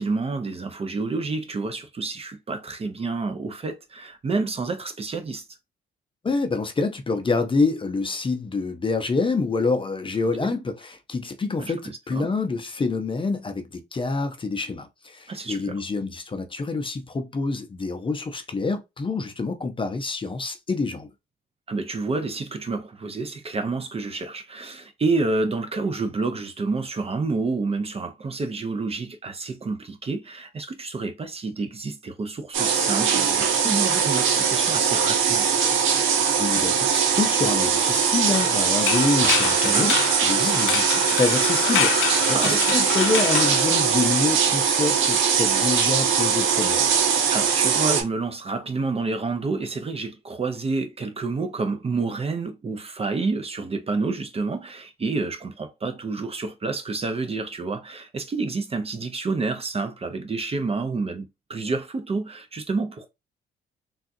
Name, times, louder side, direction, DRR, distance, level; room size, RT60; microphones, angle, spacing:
voice 1, 0.0-5.4 10.4-10.6 11.6-12.3 15.3-15.8 21.7-35.5 39.6-40.0 42.3-42.7 47.3-63.1, right 3 dB, 30° right, 0.6 m, -29 dB
voice 2, 6.2-21.1 36.4-39.9 40.2-46.9, left 3 dB, 25° left, 0.6 m, -27 dB
sound 1, 32.5-48.0, right 7 dB, 85° right, 0.7 m, -21 dB
sound 2, 38.3-44.3, left 11 dB, 90° left, 0.4 m, -27 dB
3.6 x 2.4 x 2.6 m
cardioid pair, 90°, 20 cm